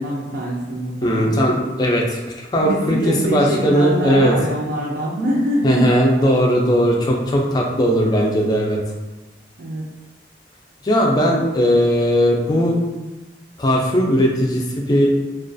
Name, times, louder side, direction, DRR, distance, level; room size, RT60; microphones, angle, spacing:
voice 1, 0.0-1.3 2.6-5.9 9.6-9.8, right 1 dB, 65° right, -5 dB, 0.4 m, -24 dB
voice 2, 1.0-4.3 5.6-8.8 10.8-12.8 13.6-15.1, equal, 20° left, -1 dB, 0.3 m, -18 dB
2.3 x 2.3 x 2.5 m, 1.1 s
head